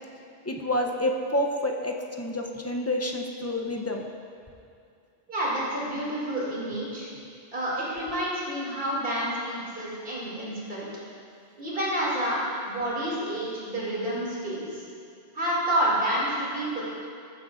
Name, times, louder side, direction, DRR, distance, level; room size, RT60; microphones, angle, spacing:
voice 1, 0.5-4.1, left 1 dB, 20° left, 1 dB, 0.4 m, -28 dB
voice 2, 5.3-7.1 7.5-10.9 11.6-12.4 12.7-14.8 15.3-16.8, right 1 dB, 55° right, -7 dB, 2.7 m, -29 dB
15.0 x 8.0 x 2.4 m, 2.4 s
omnidirectional pair, 1.1 m